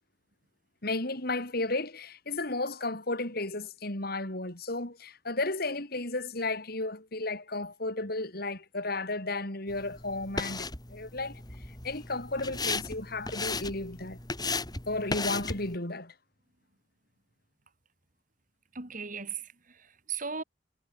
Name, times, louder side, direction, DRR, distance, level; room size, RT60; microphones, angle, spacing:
voice 1, 0.8-11.3 11.8-14.2 14.9-16.1, left 2 dB, 60° left, 4.5 m, -33 dB
sound 1, 9.7-15.8, left 3 dB, 25° left, 3.4 m, -36 dB
voice 2, 18.7-20.4, right 6 dB, 45° right, 3.9 m, -37 dB
head